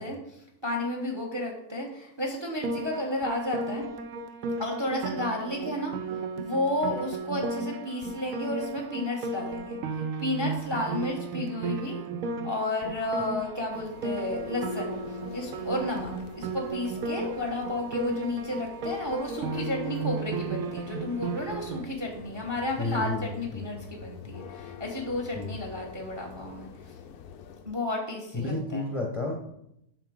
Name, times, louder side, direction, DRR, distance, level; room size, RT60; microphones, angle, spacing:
voice 1, 0.0-3.8 4.6-12.0 12.4-15.0 15.3-26.9 27.6-28.8, left 1 dB, 20° right, 1 dB, 0.9 m, -32 dB
Piano, 2.6-21.8, right 3 dB, 65° right, 0.9 m, -34 dB
Church bell, 13.5-27.8, left 8 dB, 70° left, 0.9 m, -44 dB
voice 2, 22.8-23.7 25.3-25.6 28.3-29.5, left 2 dB, 25° left, -1 dB, 0.8 m, -31 dB
8.0 x 5.7 x 3.7 m, 0.79 s
omnidirectional pair, 2.0 m